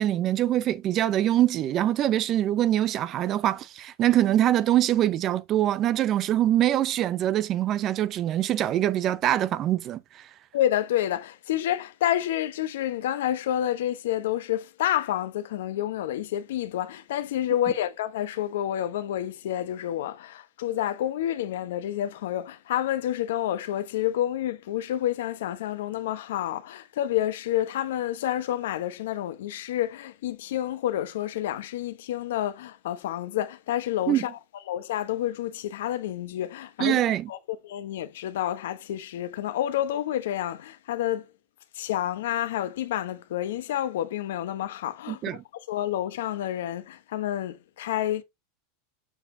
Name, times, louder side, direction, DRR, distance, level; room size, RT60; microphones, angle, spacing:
voice 1, 0.0-10.3 34.1-34.2 36.8-37.3 45.1-45.4, right 12 dB, 35° right, 0.5 m, -24 dB
voice 2, 10.5-34.4 34.7-37.0 37.3-41.3 41.7-45.4 45.7-48.2, left 12 dB, 80° left, 1.0 m, -29 dB
7.3 x 6.7 x 2.7 m
supercardioid pair, 130°, 0 cm